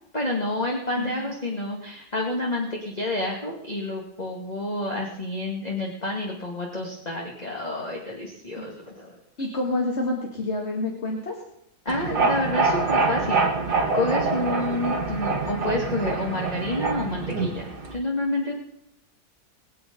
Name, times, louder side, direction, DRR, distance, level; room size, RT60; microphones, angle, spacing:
voice 1, 0.1-9.2 11.9-13.5 13.9-18.6, left 1 dB, 25° left, -1 dB, 2.2 m, -29 dB
voice 2, 0.9-1.3 8.6-8.7 9.4-11.3, left 2 dB, 45° left, 1 dB, 2.4 m, -28 dB
sound 1, 11.9-18.0, right 3 dB, 90° right, 2.7 m, -25 dB
22.5 x 8.9 x 5.3 m, 0.79 s
omnidirectional pair, 1.7 m